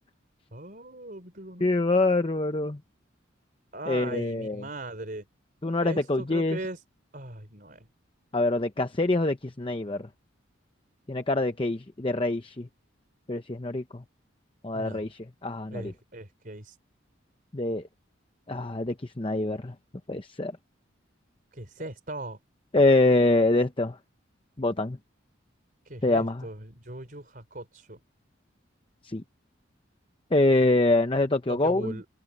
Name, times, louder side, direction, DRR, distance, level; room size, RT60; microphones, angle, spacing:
voice 1, 0.5-1.8 3.7-5.2 5.8-6.8 7.1-7.9 14.7-15.1 15.7-16.8 21.5-22.4 25.8-28.0 31.5-32.0, right 1 dB, 45° right, 4.3 m, -39 dB
voice 2, 1.6-2.8 3.9-4.6 5.6-6.6 8.3-10.1 11.1-12.7 13.3-14.0 14.6-15.9 17.5-17.9 18.5-19.7 20.1-20.5 22.7-24.0 24.6-25.0 26.0-26.5 29.0-29.2 30.3-32.0, left 2 dB, 25° left, 0.8 m, -25 dB
head